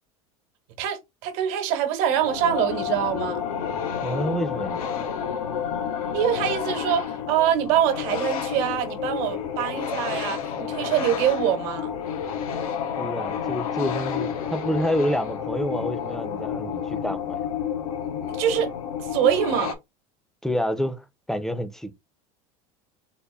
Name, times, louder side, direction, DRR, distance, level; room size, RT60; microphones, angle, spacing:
voice 1, 0.8-3.4 6.1-11.9 18.3-18.7 19.0-19.7, right 10 dB, 65° right, 1.0 m, -24 dB
sound 1, 2.1-19.7, left 8 dB, 90° left, 0.8 m, -30 dB
voice 2, 4.0-4.8 13.0-17.4 20.4-21.9, equal, ahead, 0.5 m, -28 dB
4.0 x 2.1 x 3.4 m
supercardioid pair, 105°, 18 cm